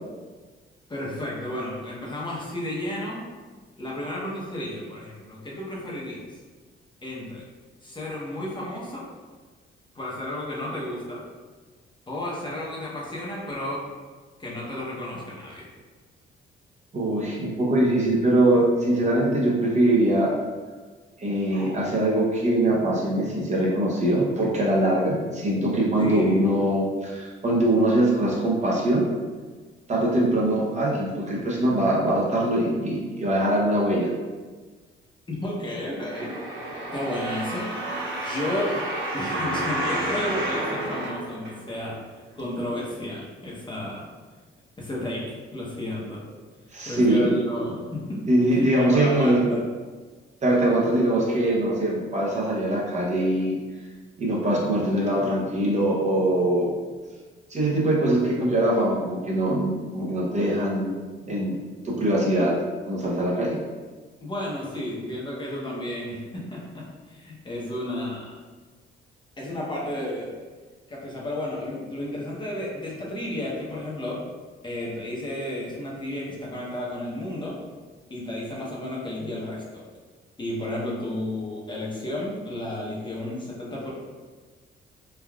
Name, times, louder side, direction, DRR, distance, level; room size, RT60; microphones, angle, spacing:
voice 1, 0.9-3.2 3.8-6.4 7.0-7.4 7.8-9.0 9.9-11.2 12.1-13.8 14.4-15.7 26.0-26.4 35.3-36.4 36.9-37.7 38.2-38.7 39.1-42.0 42.3-44.1 44.8-46.2 46.8-49.7 64.2-68.4 69.4-70.3 70.9-74.2 74.6-77.6 78.1-79.9 80.4-83.9, left 1 dB, 25° left, -5 dB, 0.7 m, -32 dB
voice 2, 16.9-20.3 21.2-29.1 29.9-34.1 46.7-47.3 48.3-49.4 50.4-53.6 54.2-56.7 57.5-60.9 61.3-61.5 61.8-62.5 62.9-63.6, right 1 dB, 35° right, -4 dB, 0.7 m, -22 dB
sound 1, 36.0-42.0 42.6-42.7, right 1 dB, 75° right, 0.6 m, -30 dB
3.3 x 2.3 x 2.3 m, 1.4 s
cardioid pair, 90°, 20 cm